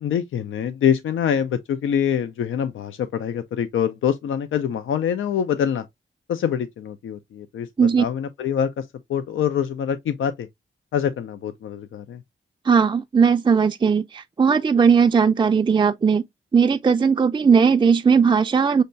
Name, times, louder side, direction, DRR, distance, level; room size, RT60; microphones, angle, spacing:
voice 1, 0.0-5.9 6.3-10.5 10.9-12.2, left 8 dB, 80° left, 0.4 m, -25 dB
voice 2, 12.6-16.2 16.5-18.8, right 6 dB, 25° right, 0.3 m, -18 dB
6.4 x 2.2 x 2.5 m
cardioid pair, 70°, 20 cm